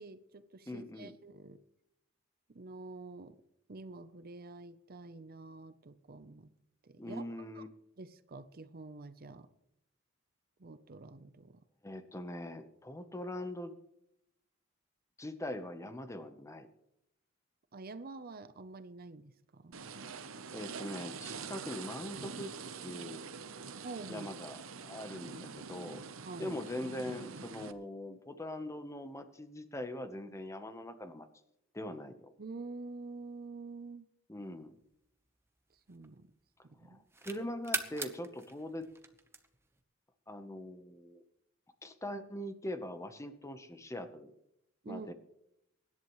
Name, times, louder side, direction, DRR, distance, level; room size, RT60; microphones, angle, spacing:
voice 1, 0.0-1.6 2.5-3.4 3.7-6.5 6.8-7.2 7.5-7.6 8.0-9.5 10.6-11.6 17.7-19.8 23.8-24.3 26.2-26.5 32.4-34.1 35.9-36.3 36.6-37.0 44.8-45.1, right 3 dB, 45° right, 0.7 m, -47 dB
voice 2, 0.7-1.1 7.0-7.7 11.8-13.7 15.2-16.7 20.5-22.5 22.8-23.2 24.1-26.0 26.4-31.3 31.7-32.3 34.3-34.8 36.8-38.9 40.3-41.2 41.8-44.3 44.9-45.1, left 1 dB, 15° left, 0.9 m, -42 dB
sound 1, 19.7-27.7, right 5 dB, 80° right, 0.9 m, -45 dB
sound 2, 34.7-36.4 36.8-39.8, right 3 dB, 10° right, 1.0 m, -42 dB
24.0 x 11.0 x 3.1 m
head